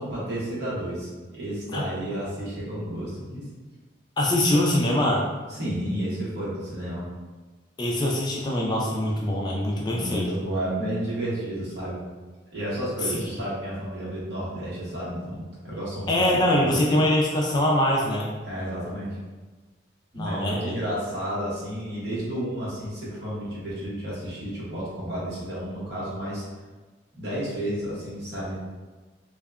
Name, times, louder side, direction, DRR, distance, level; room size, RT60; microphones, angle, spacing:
voice 1, 0.0-3.5 5.5-7.1 9.9-12.0 12.5-16.8 18.4-19.2 20.1-26.4 27.1-28.6, right 1 dB, 60° right, -8 dB, 1.0 m, -31 dB
voice 2, 4.2-5.3 7.8-10.3 13.0-13.2 16.1-18.3 20.1-20.7, left 1 dB, 25° left, -2 dB, 0.3 m, -23 dB
2.7 x 2.2 x 2.3 m, 1.3 s
head